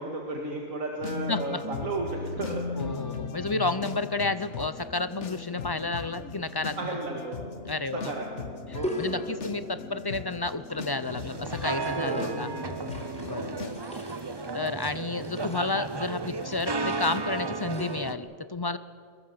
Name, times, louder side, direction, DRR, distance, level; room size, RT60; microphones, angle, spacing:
voice 1, 0.0-2.9 6.8-7.4 7.9-9.3 11.9-12.4, right 2 dB, 80° right, 0 dB, 2.4 m, -34 dB
sound 1, 1.0-13.8, left 5 dB, 60° left, 1.6 m, -38 dB
voice 2, 1.3-1.6 2.8-7.0 7.7-8.1 9.0-12.5 13.2-13.7 14.5-18.8, left 3 dB, 35° left, 13 dB, 0.4 m, -31 dB
sound 2, 8.8-9.6 10.5-11.0 11.7-12.3 12.8-14.5 15.2-15.8 16.5-17.2 17.5-18.0, equal, 5° left, 4.1 m, -39 dB
sound 3, 11.0-18.2, right 3 dB, 30° right, 0.5 m, -34 dB
22.0 x 22.0 x 6.8 m, 2.1 s
omnidirectional pair, 1.4 m